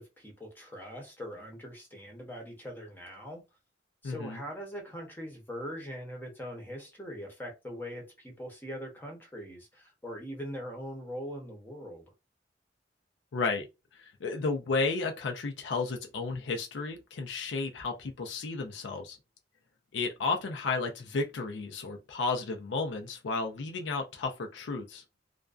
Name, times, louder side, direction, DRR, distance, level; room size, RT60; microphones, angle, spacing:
voice 1, 0.0-3.4 4.0-12.1, equal, 10° left, 0.7 m, -42 dB
voice 2, 4.0-4.4 13.3-13.7 14.0-19.2 19.9-25.0, left 3 dB, 85° left, 0.4 m, -33 dB
2.4 x 2.1 x 2.3 m
head